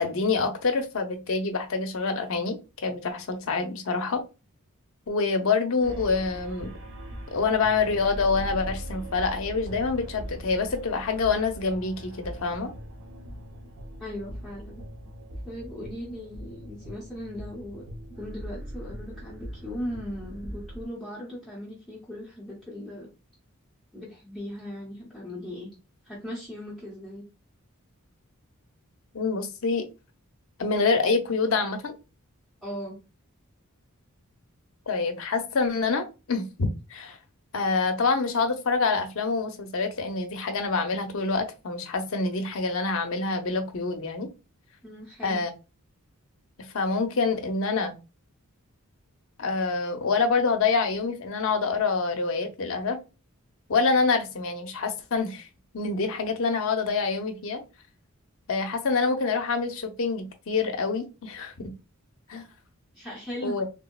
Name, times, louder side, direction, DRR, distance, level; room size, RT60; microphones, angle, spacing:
voice 1, 0.0-2.6 2.8-4.2 5.1-6.7 7.3-12.7 29.1-29.9 30.6-32.0 34.9-37.2 37.5-44.3 45.2-45.5 46.7-47.9 49.4-53.0 53.7-55.5 55.7-57.6 58.5-61.7 62.3-62.4 63.4-63.6, left 4 dB, 65° left, 5 dB, 0.6 m, -26 dB
sound 1, 5.8-20.9, equal, 60° right, 0.7 m, -40 dB
voice 2, 14.0-14.8 15.4-23.1 23.9-25.7 26.0-27.2 32.6-33.0 44.8-45.4 62.9-63.6, equal, ahead, -8 dB, 0.8 m, -38 dB
3.5 x 2.0 x 2.2 m, 0.28 s
head